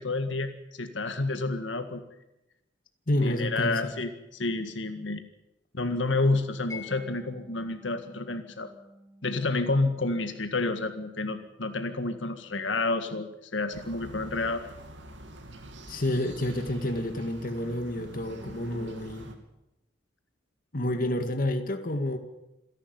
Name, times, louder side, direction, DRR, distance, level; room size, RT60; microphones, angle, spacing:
voice 1, 0.0-2.0 3.2-5.2 5.7-8.7 9.2-13.3 13.5-14.6, left 3 dB, 85° left, 8 dB, 1.8 m, -29 dB
voice 2, 3.1-3.9 15.9-19.3 20.7-22.2, left 1 dB, 50° left, 6 dB, 2.0 m, -29 dB
Mallet percussion, 6.7-13.5, left 4 dB, 15° left, 4.7 m, -51 dB
sound 1, 13.7-19.3, right 1 dB, 80° right, 3.1 m, -45 dB
27.5 x 11.5 x 9.6 m, 0.93 s
head